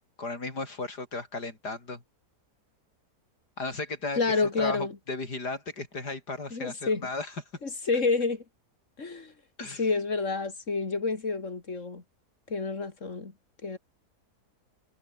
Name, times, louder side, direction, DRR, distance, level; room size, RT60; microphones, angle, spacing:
voice 1, 0.2-2.0 3.6-7.3 9.6-9.9, left 3 dB, 75° left, 5.6 m, -35 dB
voice 2, 4.2-4.9 6.5-7.1 7.6-8.4 9.0-9.3 9.8-12.0 12.5-13.3 13.6-13.8, left 4 dB, 45° left, 3.2 m, -29 dB
omnidirectional pair, 1.7 m